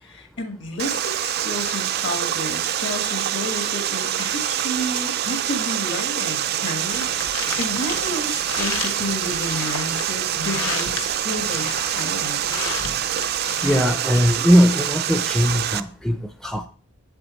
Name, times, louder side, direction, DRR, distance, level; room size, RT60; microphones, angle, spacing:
voice 1, 0.0-12.6, left 1 dB, 60° left, 1.6 m, -31 dB
Water, 0.8-15.8, right 10 dB, 55° right, 0.4 m, -25 dB
sound 1, 6.9-13.9, left 5 dB, 85° left, 1.2 m, -33 dB
voice 2, 13.6-16.7, equal, ahead, 0.5 m, -19 dB
7.9 x 7.5 x 3.1 m
head